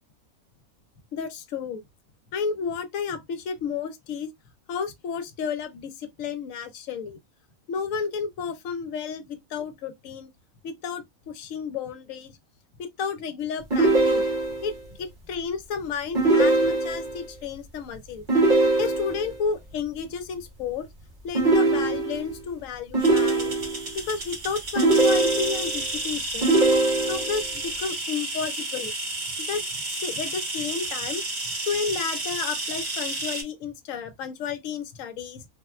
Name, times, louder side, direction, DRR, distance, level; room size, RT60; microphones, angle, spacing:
voice 1, 1.1-1.8 2.3-4.3 4.7-7.2 7.7-10.3 10.6-12.3 12.8-14.2 14.6-14.7 15.0-18.2 18.8-20.9 21.2-23.5 23.9-26.6 27.1-28.9 29.5-29.6 29.9-31.2 31.7-35.4, left 6 dB, 70° left, 0.9 m, -32 dB
sound 1, 13.7-14.7 16.1-17.2 18.3-19.3 21.3-22.4 22.9-23.9 24.8-25.8 26.4-27.4, right 2 dB, 40° right, 1.0 m, -21 dB
sound 2, 23.0-33.4, right 2 dB, 60° right, 1.4 m, -32 dB
3.5 x 2.1 x 2.3 m
omnidirectional pair, 1.5 m